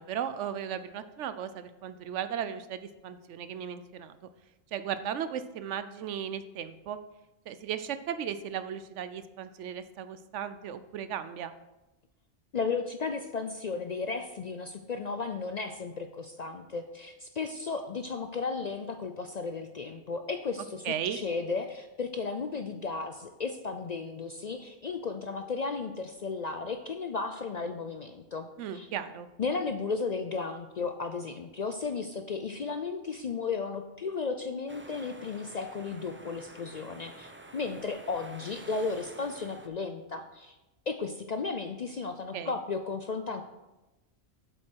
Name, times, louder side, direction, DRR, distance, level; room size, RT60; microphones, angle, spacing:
voice 1, 0.0-4.2 4.7-7.0 7.5-11.5 20.8-21.2 28.6-29.3 42.3-42.6, right 9 dB, 80° right, 12 dB, 1.0 m, -36 dB
voice 2, 12.5-20.9 21.1-28.5 28.7-28.9 29.4-40.5 40.9-43.4, left 4 dB, 55° left, 7 dB, 0.5 m, -34 dB
sound 1, 34.7-39.7, right 2 dB, 15° right, 0.5 m, -49 dB
7.9 x 7.6 x 4.5 m, 1.0 s
omnidirectional pair, 1.2 m